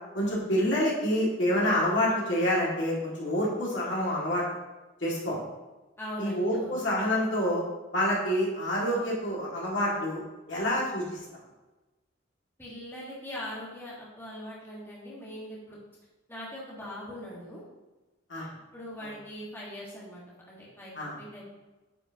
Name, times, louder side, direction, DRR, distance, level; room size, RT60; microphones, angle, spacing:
voice 1, 0.1-4.4 5.0-5.4 6.2-7.6 7.9-10.2 10.5-11.2 18.3-18.5 19.0-19.1 20.9-21.2, equal, 70° left, -5 dB, 2.2 m, -27 dB
voice 2, 6.0-6.8 12.6-15.8 16.3-17.6 18.7-21.4, equal, 10° left, -6 dB, 1.6 m, -41 dB
9.3 x 5.0 x 2.9 m, 1.1 s
head